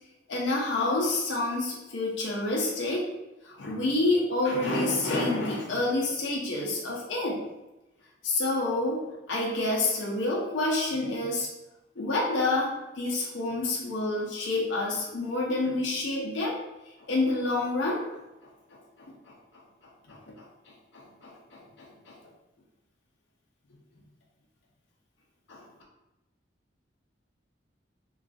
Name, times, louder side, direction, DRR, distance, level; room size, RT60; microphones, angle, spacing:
voice 1, 0.3-3.1 3.4-7.4 8.2-11.5 12.0-16.6 17.1-18.0 20.1-20.2 20.9-22.1 25.5-25.6, left 2 dB, 85° left, -4 dB, 0.6 m, -28 dB
3.1 x 2.3 x 2.5 m, 0.99 s
head